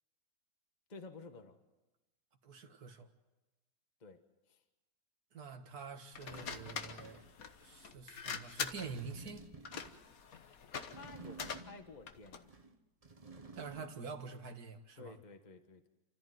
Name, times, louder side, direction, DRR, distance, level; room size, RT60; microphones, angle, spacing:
voice 1, 0.9-1.6 4.0-4.2 4.5-4.6 10.9-12.6 15.0-15.9, left 3 dB, 30° left, 1.4 m, -52 dB
voice 2, 2.4-3.1 5.3-7.2 7.6-9.5 13.6-15.2, right 4 dB, 80° right, 2.2 m, -46 dB
sound 1, 5.8-5.9 6.3-7.4 8.7-10.1 10.9-12.0 12.4-14.1 14.4-14.5, right 3 dB, 25° right, 1.1 m, -53 dB
sound 2, 6.1-12.5, left 6 dB, 70° left, 1.6 m, -44 dB
29.5 x 14.0 x 9.3 m
omnidirectional pair, 1.6 m